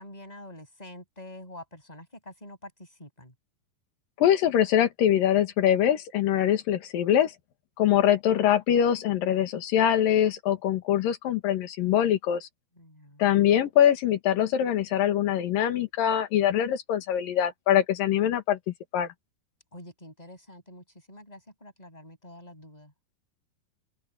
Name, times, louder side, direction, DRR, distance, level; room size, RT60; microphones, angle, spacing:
voice 1, 0.0-3.3 12.8-13.3 19.7-22.9, left 1 dB, 10° left, 7.4 m, -47 dB
voice 2, 4.2-7.3 7.8-12.5 13.2-18.6 18.9-19.1, left 10 dB, 70° left, 3.2 m, -23 dB
open air
omnidirectional pair, 4.4 m